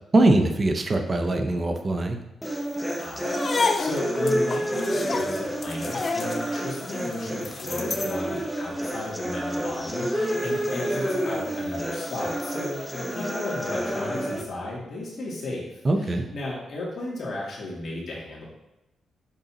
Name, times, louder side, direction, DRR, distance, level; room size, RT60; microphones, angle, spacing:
voice 1, 0.1-2.2 15.8-16.2, right 2 dB, 35° right, 5 dB, 0.7 m, -22 dB
sound 1, 2.4-14.4, equal, ahead, 0.8 m, -29 dB
voice 2, 3.0-18.4, left 2 dB, 60° left, -4 dB, 2.4 m, -35 dB
sound 2, 3.2-8.2, left 4 dB, 40° left, 0.4 m, -30 dB
6.8 x 5.3 x 3.0 m, 0.92 s
cardioid pair, 95°, 0 cm